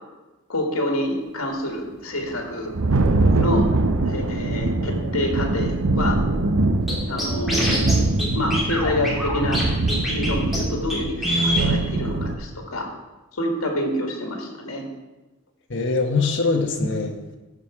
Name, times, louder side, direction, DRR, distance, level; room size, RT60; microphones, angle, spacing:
voice 1, 0.5-2.7 3.4-3.6 4.0-6.2 7.1-7.9 8.3-9.6 10.0-12.9 13.3-14.8, left 1 dB, 75° left, 2 dB, 1.7 m, -27 dB
Thunder, 2.2-12.4, right 2 dB, 80° right, 0.8 m, -23 dB
Scratching (performance technique), 6.9-7.0 7.2-7.9 8.2-8.3 8.5-9.6 9.9-10.3 10.5-10.6 10.9-11.0 11.2-11.7, equal, ahead, 2.8 m, -23 dB
voice 2, 15.7-17.3, left 3 dB, 60° left, 3 dB, 1.1 m, -23 dB
14.5 x 5.0 x 4.9 m, 1.1 s
head